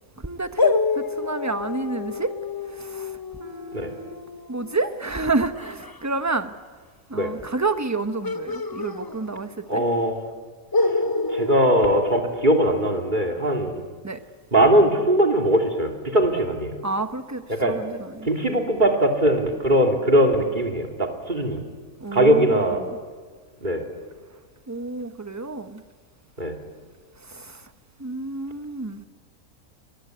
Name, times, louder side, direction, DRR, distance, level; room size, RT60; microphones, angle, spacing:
voice 1, 0.2-2.3 2.8-3.1 3.4-4.2 4.5-6.5 7.1-9.8 14.0-14.2 16.8-17.4 17.7-18.3 22.0-22.5 22.8-22.9 24.7-25.8 27.3-27.6 28.0-29.0, right 3 dB, 15° right, 9 dB, 1.0 m, -29 dB
sound 1, 0.6-6.0 8.2-9.7 10.0-10.1 10.7-12.9, left 3 dB, 25° left, 0.5 m, -28 dB
voice 2, 9.7-10.2 10.9-11.0 11.3-13.8 14.5-16.7 17.5-17.8 18.2-21.6 22.1-22.8 23.6-23.8 26.4-26.5, right 1 dB, 30° right, 3 dB, 3.1 m, -20 dB
25.5 x 20.5 x 9.4 m, 1.5 s
omnidirectional pair, 1.5 m